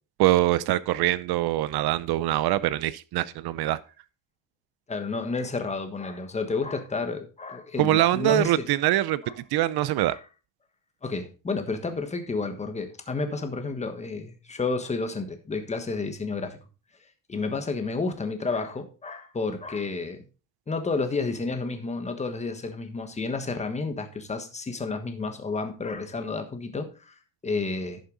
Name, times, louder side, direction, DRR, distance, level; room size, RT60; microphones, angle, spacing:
voice 1, 0.2-3.8 7.8-9.2 9.5-10.2, right 15 dB, 60° right, 0.7 m, -23 dB
voice 2, 4.9-8.7 9.2-9.3 10.1-10.2 11.0-16.6 17.3-20.2 20.7-27.1 27.4-28.0, left 3 dB, 15° left, 1.3 m, -31 dB
11.0 x 6.7 x 3.9 m
cardioid pair, 155°, 44 cm